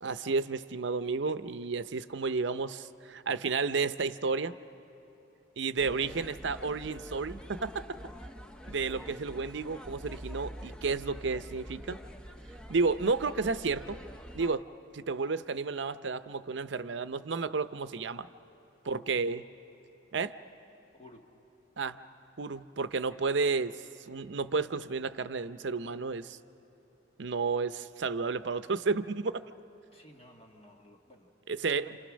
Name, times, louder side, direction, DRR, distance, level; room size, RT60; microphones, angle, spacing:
voice 1, 0.0-4.6 5.6-8.0 8.7-12.0 12.7-14.0 14.3-14.7 14.9-18.3 18.9-19.4 20.1-20.4 21.8-22.0 22.4-23.8 24.1-26.4 27.2-29.3 31.5-32.0, right 4 dB, 65° right, 12 dB, 0.6 m, -32 dB
sound 1, 5.8-14.6, equal, 5° left, 0.8 m, -46 dB
voice 2, 18.8-19.2 20.9-21.3 29.9-31.3 31.7-32.0, equal, 30° left, 1 dB, 1.5 m, -54 dB
29.5 x 27.5 x 6.3 m, 3.0 s
head